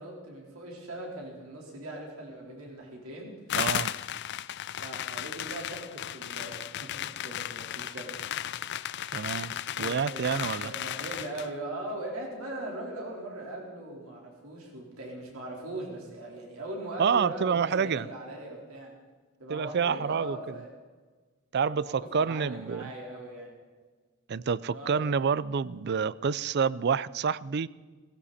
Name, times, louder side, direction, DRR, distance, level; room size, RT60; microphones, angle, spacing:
voice 1, 0.0-3.3 4.8-8.2 8.6-8.7 9.8-18.9 19.4-20.7 21.8-23.6 24.7-25.2, right 1 dB, 80° right, 4.2 m, -40 dB
sound 1, 3.5-11.5, left 11 dB, 55° left, 0.4 m, -35 dB
voice 2, 3.6-3.9 9.1-10.7 17.0-18.1 19.5-20.6 21.5-22.9 24.3-27.7, right 6 dB, 50° right, 0.4 m, -28 dB
18.5 x 16.5 x 4.2 m
head